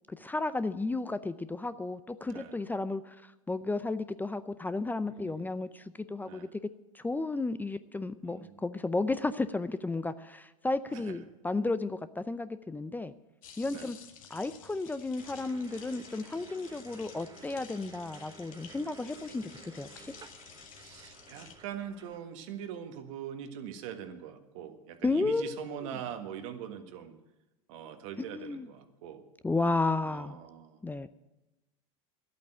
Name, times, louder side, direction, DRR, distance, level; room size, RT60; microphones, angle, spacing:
voice 1, 0.1-6.5 6.9-13.1 13.6-14.0 14.3-20.1 25.0-25.9 28.3-28.7 29.4-30.4 30.8-31.1, left 3 dB, 10° left, 13 dB, 0.5 m, -33 dB
voice 2, 2.2-2.6 5.0-5.5 6.2-6.5 8.2-8.6 10.9-11.2 13.7-13.9 20.7-27.2 27.7-29.2 30.0-30.8, right 9 dB, 65° right, 8 dB, 1.6 m, -43 dB
sound 1, 13.4-21.5, left 7 dB, 75° left, 1.9 m, -52 dB
sound 2, 15.2-22.2, right 5 dB, 25° right, 1.1 m, -54 dB
11.5 x 8.5 x 8.8 m, 1.0 s
hypercardioid pair, 95°, 17 cm